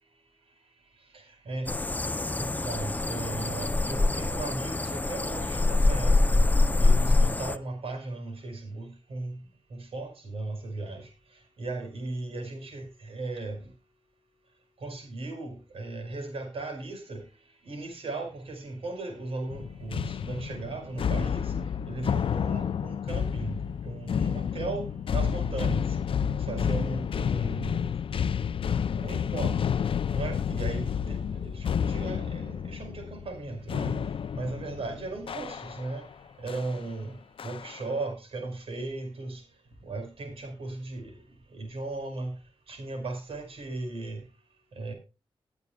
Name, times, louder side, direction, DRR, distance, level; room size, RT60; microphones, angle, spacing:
voice 1, 1.1-6.4 6.8-9.4 9.7-11.1 11.6-13.6 14.8-17.2 17.7-21.5 21.8-23.6 23.8-26.0 26.5-27.9 28.9-29.6 30.1-34.0 34.3-36.1 36.4-37.1 37.4-39.4 39.8-41.1 41.5-42.3 42.7-44.2 44.8-44.9, right 2 dB, 80° right, 5.2 m, -36 dB
sound 1, 1.7-7.6, left 2 dB, 15° left, 0.6 m, -25 dB
sound 2, 19.5-36.0 36.5-36.8 37.4-37.9, left 7 dB, 70° left, 0.5 m, -30 dB
21.0 x 8.1 x 2.3 m
wide cardioid pair, 135°, 10 cm